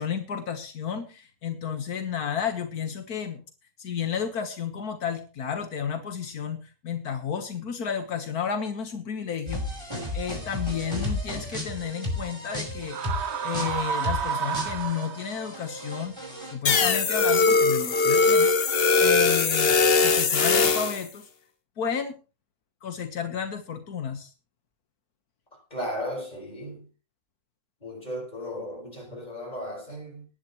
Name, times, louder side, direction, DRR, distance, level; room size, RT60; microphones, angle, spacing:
voice 1, 0.0-3.4 3.8-9.9 10.1-13.0 13.4-16.1 16.5-18.5 19.0-21.3 21.8-22.2 22.8-24.3, left 7 dB, 80° left, 1.8 m, -32 dB
sound 1, 9.5-17.0 17.3-19.0, left 1 dB, 15° right, 5.0 m, -35 dB
sound 2, 12.8-15.5, right 7 dB, 55° right, 0.9 m, -30 dB
sound 3, 16.7-21.0, left 4 dB, 45° left, 1.2 m, -21 dB
voice 2, 25.5-26.9 27.8-30.3, equal, 25° left, 5.2 m, -35 dB
19.5 x 11.0 x 3.1 m
omnidirectional pair, 1.6 m